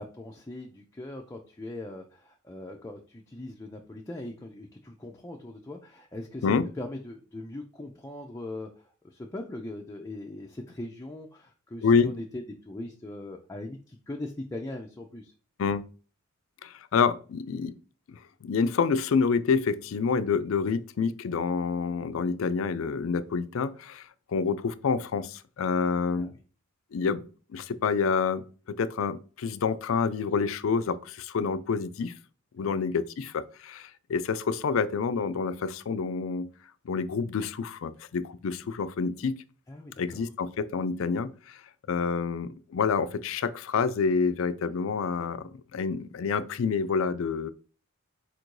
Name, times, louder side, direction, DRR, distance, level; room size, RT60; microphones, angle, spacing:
voice 1, 0.0-15.3 26.1-26.4 32.6-32.7 39.7-40.2, left 1 dB, 15° left, 0.4 m, -40 dB
voice 2, 11.8-12.1 15.6-15.8 16.6-17.7 18.4-24.0 24.3-26.3 26.9-27.3 27.5-28.4 28.8-32.1 32.6-36.5 36.9-39.4 40.0-41.6 41.9-47.5, left 5 dB, 80° left, 0.4 m, -28 dB
4.4 x 2.6 x 4.5 m
head